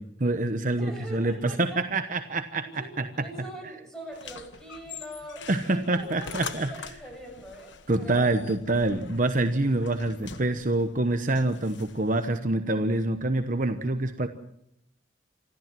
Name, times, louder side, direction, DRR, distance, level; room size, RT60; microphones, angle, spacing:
voice 1, 0.0-1.3 1.6-2.6 5.5-6.7 7.9-14.3, right 2 dB, 45° right, 8 dB, 1.1 m, -26 dB
voice 2, 0.7-2.0 2.6-8.3, right 1 dB, 5° left, 2 dB, 7.1 m, -43 dB
sound 1, 4.1-12.2, left 5 dB, 85° left, 1.3 m, -44 dB
26.5 x 14.0 x 7.6 m, 0.80 s
head